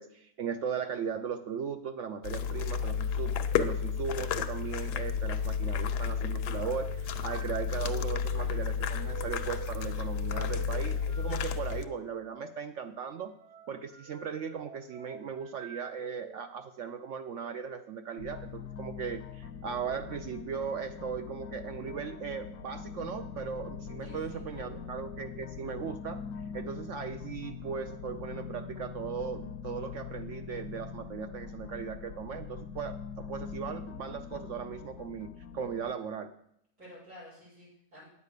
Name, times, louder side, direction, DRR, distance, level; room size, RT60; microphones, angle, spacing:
voice 1, 0.0-13.3 13.7-26.2 26.5-36.3, right 6 dB, 70° right, 9 dB, 0.7 m, -38 dB
sound 1, 2.2-11.8, left 7 dB, 85° left, 1.2 m, -32 dB
sound 2, 6.5-16.5 17.2-17.5 19.5-19.8 20.6-21.2 21.7-22.0 22.8-23.3 23.8-24.8, right 7 dB, 50° right, 1.2 m, -49 dB
sound 3, 18.2-35.9, left 6 dB, 65° left, 0.9 m, -43 dB
voice 2, 24.0-24.9 36.8-38.0, left 1 dB, 85° right, -12 dB, 5.4 m, -51 dB
9.4 x 7.4 x 6.6 m, 0.74 s
omnidirectional pair, 1.7 m